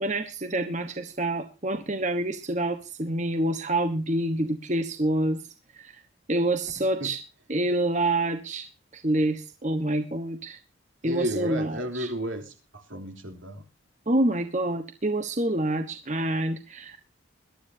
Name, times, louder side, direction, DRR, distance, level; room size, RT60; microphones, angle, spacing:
voice 1, 0.0-5.4 5.7-6.0 6.3-7.2 7.5-8.7 8.9-10.6 11.0-12.1 14.1-17.0, right 1 dB, 35° right, 7 dB, 1.2 m, -27 dB
voice 2, 6.8-7.1 11.0-13.6, equal, 75° right, 5 dB, 3.3 m, -33 dB
22.0 x 12.0 x 2.8 m, 0.31 s
head